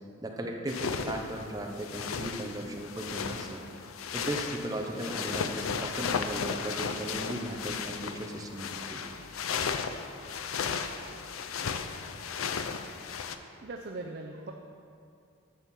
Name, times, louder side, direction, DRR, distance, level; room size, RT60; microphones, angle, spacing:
voice 1, 0.2-3.6 4.1-9.0, right 1 dB, 20° right, 1 dB, 0.8 m, -36 dB
sound 1, 0.7-13.4, left 6 dB, 90° left, 0.5 m, -35 dB
voice 2, 13.6-14.5, right 2 dB, 50° right, 3 dB, 0.5 m, -39 dB
10.5 x 4.4 x 7.3 m, 2.5 s
head